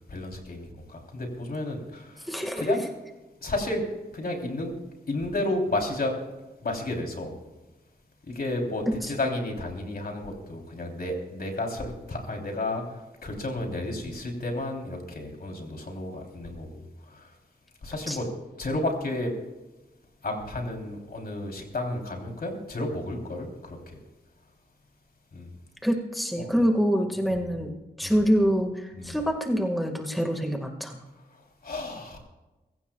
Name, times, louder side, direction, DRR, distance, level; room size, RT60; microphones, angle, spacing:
voice 1, 0.1-2.3 2.6-2.9 3.4-3.8 4.1-4.7 5.1-6.2 6.6-7.3 8.3-12.8 13.2-16.8 17.1-17.3 17.8-18.3 18.6-19.3 20.2-24.0 25.3-25.5 26.4-26.5 27.3-27.4 28.0-28.3 28.9-29.3 31.6-32.2, left 2 dB, 65° left, 1 dB, 3.4 m, -32 dB
voice 2, 2.3-2.8 18.1-18.2 25.8-27.7 28.0-31.0, equal, ahead, 3 dB, 1.8 m, -25 dB
23.0 x 16.0 x 2.3 m, 1.1 s
wide cardioid pair, 85°, 17 cm